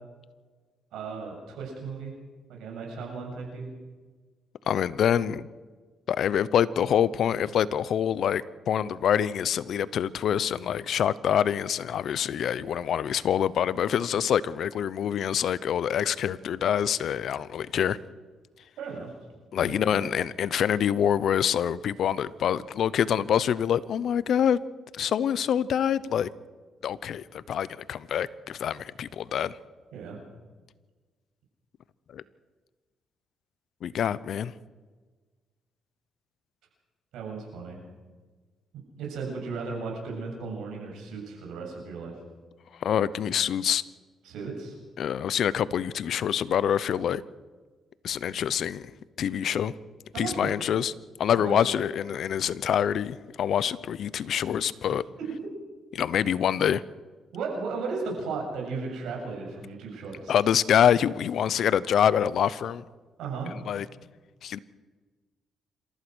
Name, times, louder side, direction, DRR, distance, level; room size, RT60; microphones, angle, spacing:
voice 1, 0.9-2.1 2.5-3.7 18.8-19.1 19.7-20.1 29.9-30.2 37.1-37.8 39.0-42.1 44.2-44.8 50.1-50.5 51.3-51.7 54.8-54.9 55.2-55.3 57.3-60.3 63.2-63.5, right 4 dB, 85° right, 0 dB, 7.7 m, -35 dB
voice 2, 4.7-5.5 6.1-18.0 19.5-24.6 24.9-26.3 26.8-29.6 32.1-32.2 33.8-34.5 42.8-43.8 45.0-47.2 48.0-48.9 49.2-49.7 50.2-50.9 51.2-55.0 55.9-56.8 60.3-62.8 63.7-63.9 64.4-64.6, left 9 dB, 65° left, 18 dB, 0.8 m, -26 dB
27.5 x 15.0 x 6.3 m, 1.4 s
cardioid pair, 90°, 0 cm